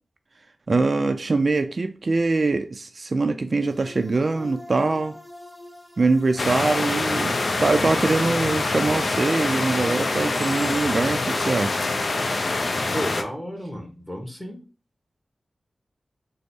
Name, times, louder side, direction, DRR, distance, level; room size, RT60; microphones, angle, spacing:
voice 1, 0.7-5.2 6.0-11.8, right 3 dB, 55° right, 0.3 m, -23 dB
sound 1, 3.6-12.3, equal, 5° right, 0.9 m, -44 dB
sound 2, 6.4-13.2, left 3 dB, 65° left, 0.5 m, -25 dB
voice 2, 12.9-14.6, equal, 15° left, 1.1 m, -32 dB
3.8 x 2.0 x 3.4 m
cardioid pair, 55°, 0 cm